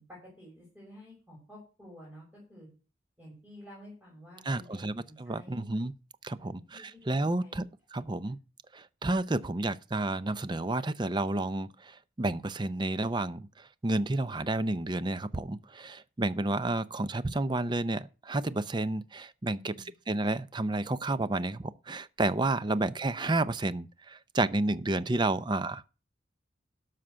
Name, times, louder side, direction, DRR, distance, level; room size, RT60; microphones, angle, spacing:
voice 1, 0.0-2.2 2.5-2.7 3.2-4.9 5.2-5.6 6.3-7.6 7.9-8.4 15.7-15.8 19.5-19.9 22.6-22.7, equal, 5° right, 6.0 m, -51 dB
voice 2, 4.4-5.9 6.2-7.6 7.9-8.4 8.7-19.8 20.1-25.8, right 2 dB, 25° right, 0.5 m, -31 dB
12.5 x 5.9 x 6.2 m
head